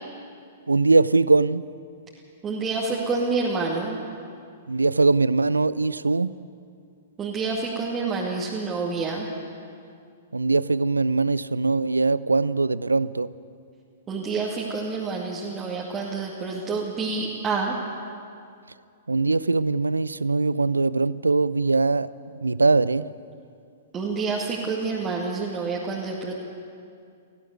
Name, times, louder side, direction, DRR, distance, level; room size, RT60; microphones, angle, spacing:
voice 1, 0.7-1.6 4.7-6.3 10.3-13.3 19.1-22.1 22.4-23.1, right 3 dB, 80° right, 19 dB, 0.5 m, -21 dB
voice 2, 2.4-4.0 7.2-9.3 14.1-17.8 23.9-26.3, right 4 dB, 20° right, -4 dB, 2.3 m, -28 dB
18.5 x 16.0 x 9.5 m, 2.3 s
figure-of-eight pair, 110°, 0 cm